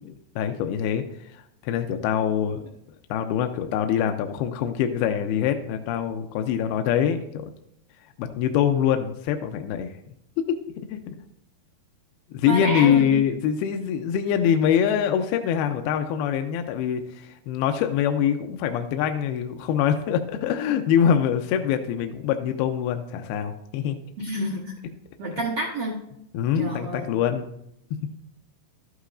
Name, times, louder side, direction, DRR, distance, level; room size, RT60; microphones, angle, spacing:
voice 1, 0.0-2.7 3.1-7.5 8.2-10.0 10.5-10.6 10.9-11.1 12.3-24.0 26.3-27.5, left 9 dB, 85° left, 6 dB, 2.5 m, -24 dB
voice 2, 12.5-13.2 24.2-24.8 25.2-26.0 26.6-27.1, right 1 dB, 65° right, -3 dB, 1.4 m, -29 dB
12.5 x 11.5 x 2.6 m, 0.77 s
omnidirectional pair, 4.6 m